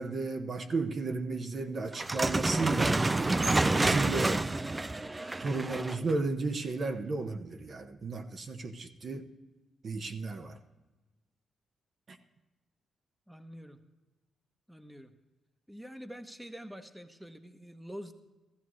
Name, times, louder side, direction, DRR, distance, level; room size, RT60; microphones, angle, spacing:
voice 1, 0.0-3.0 3.8-4.4 5.4-9.3 9.8-10.6, right 3 dB, 50° right, 5 dB, 1.0 m, -33 dB
sound 1, 1.9-6.1, right 2 dB, 20° right, 0.4 m, -28 dB
voice 2, 13.3-13.8 14.7-15.1 15.7-18.1, equal, 5° right, 7 dB, 1.0 m, -46 dB
16.0 x 14.0 x 3.2 m, 1.1 s
cardioid pair, 85°, 0 cm